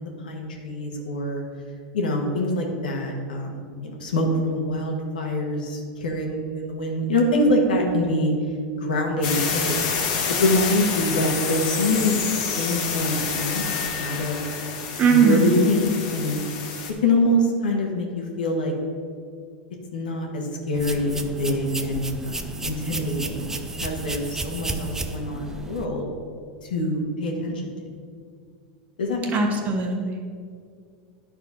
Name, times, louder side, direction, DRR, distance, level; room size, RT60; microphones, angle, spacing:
voice 1, 0.0-1.4 1.9-8.3 8.8-9.6 10.4-12.3 12.6-14.4 15.1-16.4 17.0-18.7 19.9-26.0 26.7-27.7 29.0-29.5, left 1 dB, 90° left, 1 dB, 1.6 m, -25 dB
sound 1, 9.2-16.9, left 6 dB, 60° left, 1.4 m, -28 dB
voice 2, 15.0-15.6 29.3-30.3, right 5 dB, 35° right, 3 dB, 1.2 m, -20 dB
sound 2, 20.7-25.8, right 2 dB, 10° right, 0.6 m, -33 dB
9.9 x 4.5 x 5.5 m, 2.2 s
hypercardioid pair, 115°, 5 cm